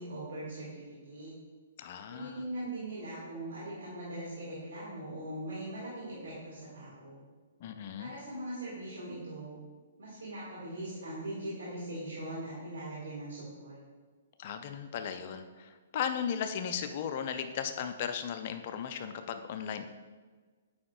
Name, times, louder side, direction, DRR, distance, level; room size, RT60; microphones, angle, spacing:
voice 1, 0.0-1.3 2.1-7.2 8.0-9.5 10.0-13.8, right 1 dB, 75° right, -8 dB, 1.8 m, -41 dB
voice 2, 1.8-2.4 7.6-8.1 14.4-19.9, left 8 dB, 45° left, 8 dB, 0.4 m, -36 dB
8.5 x 4.8 x 2.3 m, 1.4 s
figure-of-eight pair, 120°, 0 cm